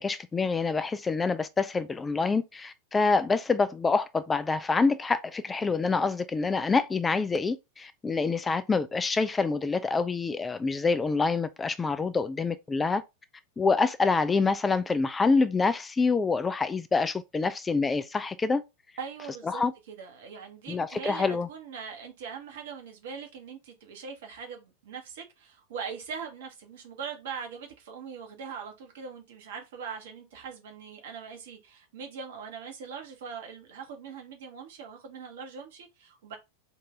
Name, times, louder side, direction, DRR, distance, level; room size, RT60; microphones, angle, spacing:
voice 1, 0.0-13.0 13.6-18.6 19.5-19.7 20.7-21.5, left 4 dB, 15° left, 0.3 m, -26 dB
voice 2, 19.0-36.4, right 6 dB, 55° right, 1.1 m, -41 dB
4.1 x 2.6 x 3.5 m
figure-of-eight pair, 90°, 0 cm